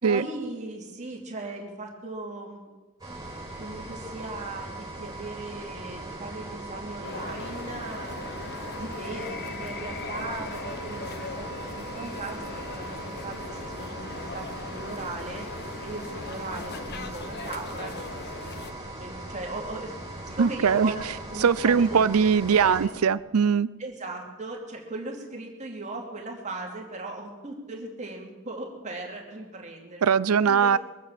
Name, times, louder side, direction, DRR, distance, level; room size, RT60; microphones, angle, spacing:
voice 1, 0.0-2.7 3.6-8.1 8.8-15.4 15.8-18.6 19.0-20.0 20.3-21.0 21.3-22.0 22.5-22.9 23.8-30.1 30.5-30.7, right 2 dB, 35° right, 0 dB, 2.6 m, -38 dB
sound 1, 3.0-22.9, right 2 dB, 15° right, 4.9 m, -39 dB
sound 2, 7.0-18.7, left 3 dB, 50° left, 1.0 m, -39 dB
voice 2, 20.4-20.9 21.4-23.7 30.0-30.8, right 6 dB, 85° right, 18 dB, 0.5 m, -21 dB
22.5 x 8.5 x 7.5 m, 1.2 s
head